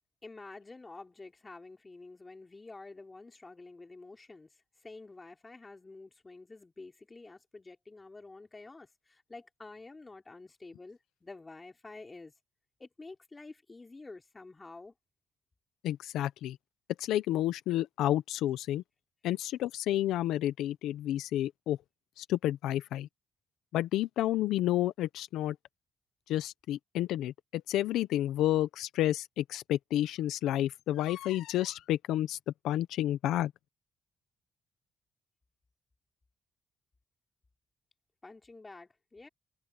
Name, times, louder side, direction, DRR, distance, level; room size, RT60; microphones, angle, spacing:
voice 1, 0.2-12.3 12.8-14.9 38.2-39.3, left 3 dB, 25° left, 3.9 m, -49 dB
voice 2, 15.8-16.6 17.0-18.8 19.2-21.8 22.2-23.1 23.7-25.6 26.3-32.4 32.6-33.5, left 13 dB, 85° left, 0.7 m, -30 dB
cardioid pair, 90°, 0 cm